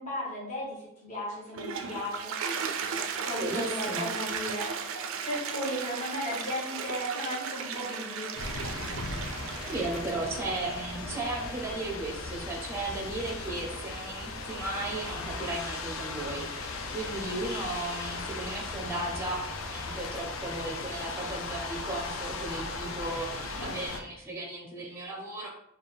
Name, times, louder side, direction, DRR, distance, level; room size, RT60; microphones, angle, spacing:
voice 1, 0.0-2.3 3.2-4.7 5.0-8.3, equal, 35° left, -7 dB, 1.4 m, -35 dB
Toilet flush, 1.3-11.7, right 6 dB, 80° right, 0.4 m, -36 dB
voice 2, 3.4-4.1 9.7-19.4 19.7-25.5, right 2 dB, 10° right, 0 dB, 0.6 m, -35 dB
sound 1, 8.4-24.0, left 3 dB, 85° left, 0.5 m, -37 dB
4.2 x 2.4 x 3.3 m, 0.77 s
head